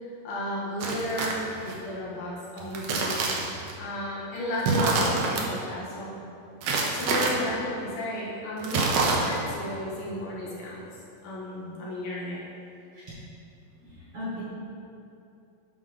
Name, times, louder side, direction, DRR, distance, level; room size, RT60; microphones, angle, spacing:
voice 1, 0.0-3.2 3.8-6.2 6.9-10.9 11.2-12.5, left 1 dB, 90° left, -7 dB, 3.6 m, -33 dB
sound 1, 0.8-1.7 2.6-3.7 4.6-5.4 6.6-7.3 8.6-9.5, right 3 dB, 85° right, 1.4 m, -26 dB
voice 2, 13.8-14.4, left 2 dB, 55° right, -8 dB, 1.6 m, -37 dB
10.5 x 3.8 x 5.2 m, 2.7 s
omnidirectional pair, 4.1 m